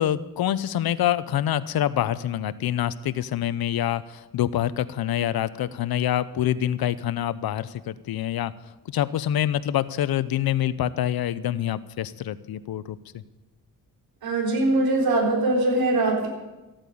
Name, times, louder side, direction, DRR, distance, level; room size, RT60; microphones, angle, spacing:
voice 1, 0.0-8.5 8.9-13.2, left 11 dB, 75° left, 15 dB, 0.8 m, -26 dB
voice 2, 14.2-16.3, right 2 dB, 70° right, -1 dB, 4.1 m, -22 dB
14.5 x 8.9 x 8.6 m, 1.1 s
cardioid pair, 80°, 37 cm